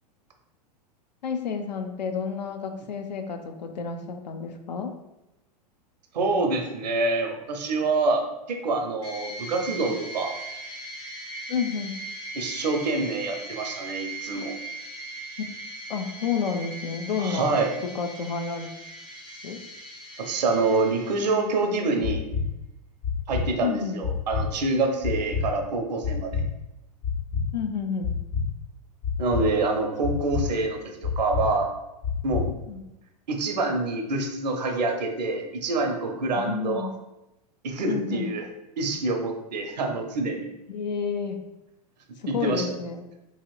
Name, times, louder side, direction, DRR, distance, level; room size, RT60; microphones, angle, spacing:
voice 1, 1.2-4.9 11.5-12.0 15.4-15.5 15.9-17.5 17.8-18.7 19.4-19.6 23.6-24.0 27.5-28.1 32.7-32.8 36.3-36.9 37.9-38.3 40.7-41.4 42.2-43.1, left 6 dB, 85° left, 6 dB, 0.4 m, -30 dB
voice 2, 6.1-10.3 12.3-14.5 17.2-17.7 20.2-22.3 23.3-26.3 29.2-31.7 32.2-32.4 33.3-36.9 37.6-38.5 38.8-40.4 42.3-42.7, right 3 dB, 80° right, 3 dB, 0.6 m, -26 dB
sound 1, 9.0-21.9, right 1 dB, 25° left, 0.7 m, -39 dB
sound 2, 22.0-22.4 23.0-23.4 24.0-24.4 25.0-25.4 26.0-26.4 27.0-27.4 28.0-28.4 29.0-29.4 30.0-30.4 31.0-31.4 32.0-32.4, left 6 dB, 65° left, 1.1 m, -27 dB
2.9 x 2.7 x 2.3 m, 0.93 s
hypercardioid pair, 105°, 21 cm